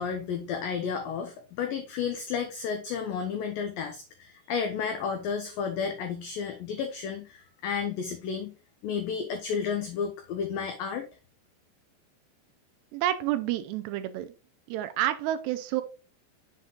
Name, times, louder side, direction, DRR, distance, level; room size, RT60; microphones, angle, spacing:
voice 1, 0.0-8.5 8.8-11.1, left 6 dB, 85° left, 5 dB, 2.0 m, -32 dB
voice 2, 12.9-14.3 14.7-15.8, right 13 dB, 80° right, 10 dB, 2.6 m, -29 dB
7.1 x 3.7 x 3.8 m, 0.32 s
omnidirectional pair, 4.9 m